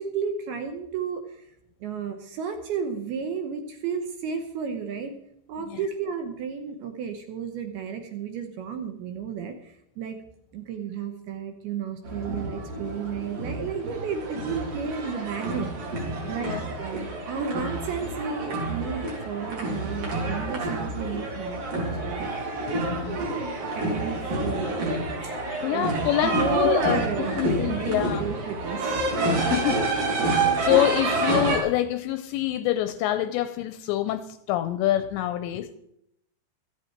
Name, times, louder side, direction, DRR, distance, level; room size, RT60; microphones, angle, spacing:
voice 1, 0.0-1.5 1.8-5.1 5.5-10.2 10.5-15.7 16.3-22.7 23.1-24.9 25.2-25.3 25.7-26.0 26.2-29.1 30.4-30.6, right 6 dB, 70° right, 2.5 m, -33 dB
sound 1, 12.0-31.6, right 2 dB, 50° right, 5.0 m, -28 dB
voice 2, 16.2-16.6 22.7-23.2 25.2-27.1 27.4-28.2 29.4-29.8 30.3-35.7, left 13 dB, 80° left, 2.6 m, -26 dB
16.0 x 13.5 x 4.5 m
omnidirectional pair, 5.5 m